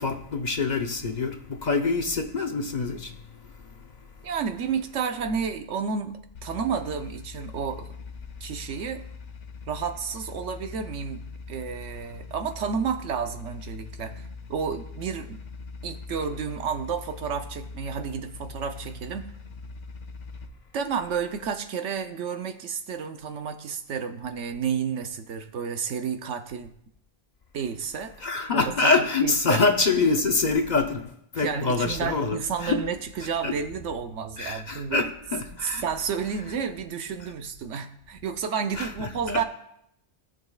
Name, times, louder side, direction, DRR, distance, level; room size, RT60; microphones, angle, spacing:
voice 1, 0.0-4.1 28.2-32.8 33.4-33.5 34.4-35.8 38.7-39.4, left 3 dB, 45° left, 0.8 m, -26 dB
voice 2, 4.2-7.9 8.4-9.0 9.7-15.4 15.8-19.3 20.7-26.7 27.5-28.1 28.5-28.9 29.2-29.6 31.4-35.0 35.6-39.4, right 6 dB, 90° right, 1.1 m, -31 dB
sound 1, 6.3-20.5, left 4 dB, 80° left, 1.2 m, -41 dB
17.5 x 6.7 x 2.3 m
omnidirectional pair, 1.2 m